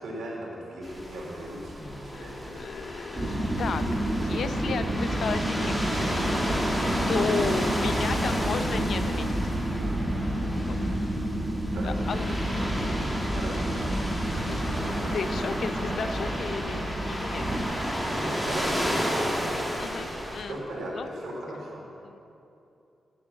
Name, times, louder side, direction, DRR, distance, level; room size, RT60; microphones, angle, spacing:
voice 1, 0.0-2.6 11.6-12.1 13.3-13.8 18.0-19.5 20.5-21.8, right 1 dB, 80° right, -4 dB, 3.5 m, -37 dB
sound 1, 0.8-20.4, equal, 5° left, 2.3 m, -32 dB
voice 2, 2.1-5.7 7.1-9.3 10.7-10.8 11.8-12.9 14.4-14.8 15.1-17.4 19.8-20.5 20.9-21.1 22.0-22.2, left 5 dB, 75° left, 10 dB, 0.6 m, -34 dB
sound 2, 3.2-17.6, right 1 dB, 25° right, 2.0 m, -29 dB
10.5 x 8.3 x 7.3 m, 2.7 s
cardioid pair, 80°, 0 cm